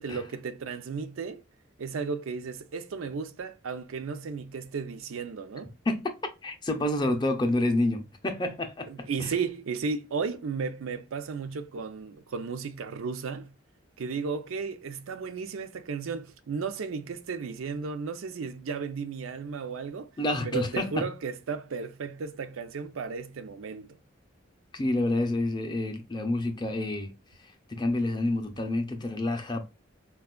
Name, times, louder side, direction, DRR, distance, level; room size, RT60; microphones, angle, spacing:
voice 1, 0.0-1.4 1.8-5.7 8.9-13.6 14.0-20.1 20.4-24.0, right 5 dB, 90° right, 0.4 m, -34 dB
voice 2, 6.4-9.3 20.2-21.1 24.7-27.1 27.7-29.7, left 1 dB, 20° left, 0.5 m, -28 dB
4.2 x 2.2 x 2.2 m
head